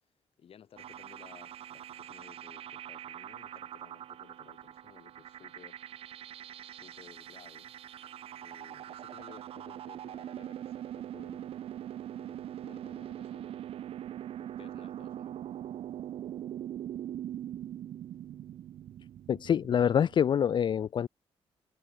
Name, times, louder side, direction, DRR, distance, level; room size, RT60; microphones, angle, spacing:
voice 1, 0.4-5.8 6.6-7.7 8.4-11.8 12.1-13.7 14.4-15.4, left 8 dB, 65° left, 6.3 m, -57 dB
sound 1, 0.8-20.2, right 11 dB, 70° right, 0.4 m, -42 dB
voice 2, 19.3-21.1, left 8 dB, 50° left, 0.4 m, -26 dB
cardioid pair, 105°, 10 cm